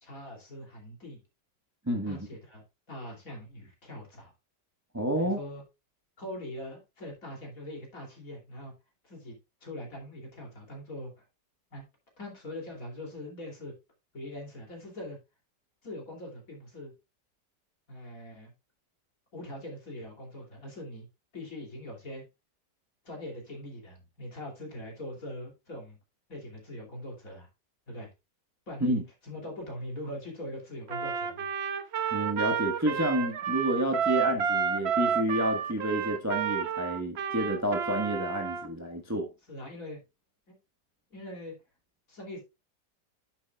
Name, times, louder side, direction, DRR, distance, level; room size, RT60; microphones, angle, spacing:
voice 1, 0.0-1.2 2.0-2.6 2.9-4.3 5.2-5.6 6.2-8.7 9.0-9.4 9.6-11.1 11.7-11.8 12.2-13.7 14.1-15.2 15.8-16.9 17.9-18.5 19.3-21.1 21.3-22.2 23.0-26.0 26.3-27.5 27.9-28.1 28.7-31.5 39.5-40.0 40.5-40.6 41.1-41.6 42.1-42.4, left 1 dB, 50° left, 3.2 m, -42 dB
voice 2, 1.9-2.3 4.9-5.4 28.8-29.0 32.1-39.3, equal, 10° right, 1.0 m, -29 dB
Trumpet, 30.9-38.7, right 7 dB, 55° right, 0.8 m, -30 dB
9.6 x 7.5 x 2.3 m
omnidirectional pair, 1.9 m